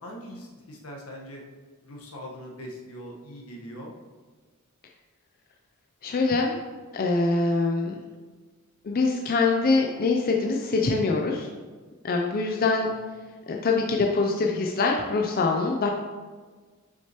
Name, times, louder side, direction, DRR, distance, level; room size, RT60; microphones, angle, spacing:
voice 1, 0.0-1.4 1.8-3.9, equal, 85° left, -1 dB, 1.3 m, -41 dB
voice 2, 6.0-6.6 6.9-8.0 8.8-11.5 12.0-12.9 13.5-15.9, left 3 dB, 45° left, 1 dB, 0.5 m, -24 dB
6.6 x 6.2 x 2.9 m, 1.4 s
head